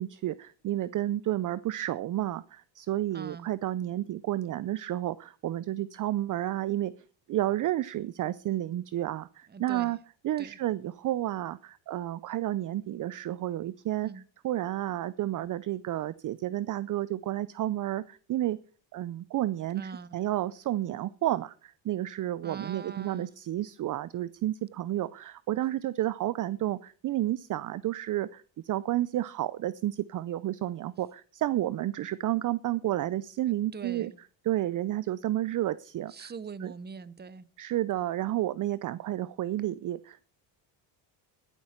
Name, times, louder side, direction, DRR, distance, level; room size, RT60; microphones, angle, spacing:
voice 1, 0.0-6.9 7.3-10.0 10.2-14.1 14.4-18.6 18.9-34.1 34.4-36.3 36.6-36.7 37.6-40.3, right 14 dB, 40° right, 0.5 m, -31 dB
voice 2, 3.1-3.5 9.5-9.9 10.4-10.6 14.0-14.2 19.7-20.2 22.4-23.3 33.5-34.2 36.1-37.5, right 5 dB, 20° right, 0.8 m, -43 dB
12.5 x 11.5 x 4.4 m
cardioid pair, 95°, 47 cm